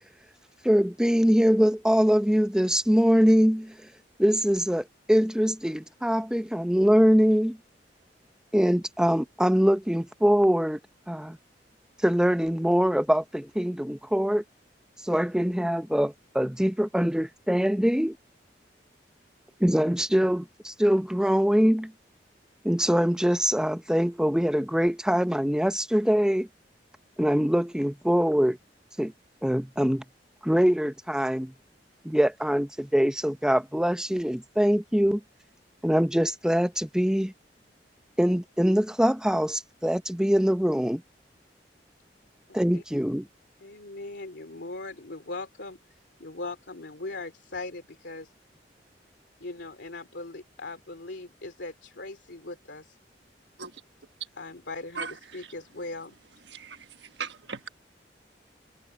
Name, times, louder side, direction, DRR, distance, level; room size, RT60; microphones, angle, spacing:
voice 1, 0.6-3.7 4.2-7.6 8.5-10.8 11.1-11.4 12.0-14.4 15.0-18.2 19.6-21.9 22.6-26.5 27.2-28.6 29.0-29.1 29.4-30.0 30.4-31.5 32.0-35.2 35.8-37.3 38.2-41.0 42.5-43.3, equal, 5° right, 0.8 m, -23 dB
voice 2, 42.5-42.8 43.6-48.3 49.4-53.0 54.3-56.1, left 2 dB, 80° left, 2.8 m, -40 dB
voice 3, 57.2-57.7, right 5 dB, 75° right, 1.3 m, -35 dB
head